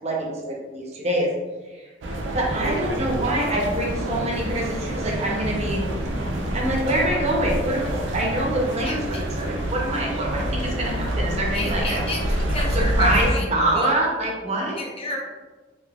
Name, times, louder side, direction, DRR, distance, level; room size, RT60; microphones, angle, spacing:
voice 1, 0.0-1.3 1.7-1.8 2.3-5.8 6.5-12.0 12.6-14.8, right 1 dB, 35° right, -1 dB, 0.6 m, -25 dB
sound 1, 2.0-13.3, right 1 dB, 85° right, 0.5 m, -27 dB
voice 2, 8.8-9.2 11.5-13.4 13.7-13.9 14.8-15.2, left 1 dB, 30° left, 0 dB, 0.5 m, -31 dB
3.4 x 2.7 x 2.2 m, 1.3 s
head